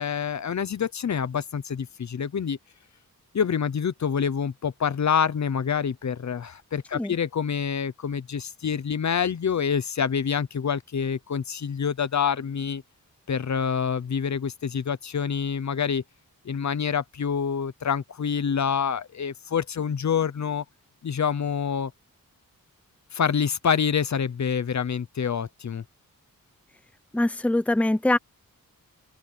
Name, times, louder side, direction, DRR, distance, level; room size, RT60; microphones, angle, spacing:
voice 1, 0.0-2.6 3.3-12.8 13.3-16.0 16.4-20.6 21.0-21.9 23.1-25.8, left 7 dB, 55° left, 0.8 m, -27 dB
voice 2, 27.1-28.2, left 1 dB, 5° left, 0.7 m, -23 dB
open air
wide cardioid pair, 175°, 34 cm